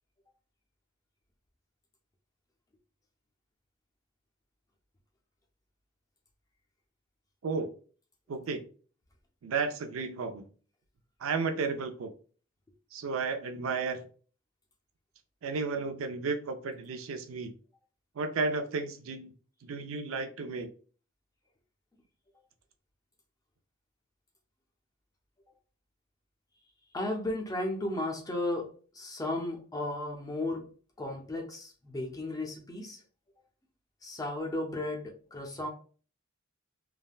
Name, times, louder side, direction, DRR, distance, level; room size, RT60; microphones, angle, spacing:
voice 1, 8.3-8.6 9.4-10.5 11.2-12.1 12.9-14.1 15.4-17.5 18.2-19.3 19.6-20.7, right 4 dB, 70° right, 7 dB, 0.4 m, -33 dB
voice 2, 26.9-30.7 31.0-33.0 34.0-35.7, left 1 dB, 15° left, 1 dB, 0.5 m, -34 dB
3.4 x 2.1 x 2.3 m, 0.41 s
head